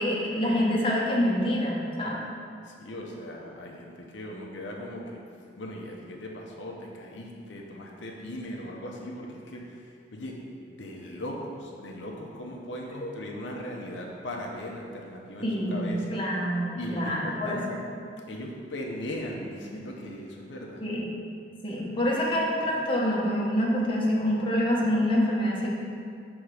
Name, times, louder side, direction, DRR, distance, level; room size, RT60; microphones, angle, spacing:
voice 1, 0.0-2.2 13.0-13.1 15.4-17.8 20.8-21.1 21.6-25.7, equal, 30° left, -4 dB, 1.0 m, -26 dB
voice 2, 2.7-5.2 5.6-9.7 10.1-10.4 10.7-16.2 16.8-17.7 18.3-20.8, left 1 dB, 90° left, -1 dB, 0.7 m, -38 dB
6.4 x 3.5 x 4.8 m, 2.4 s
head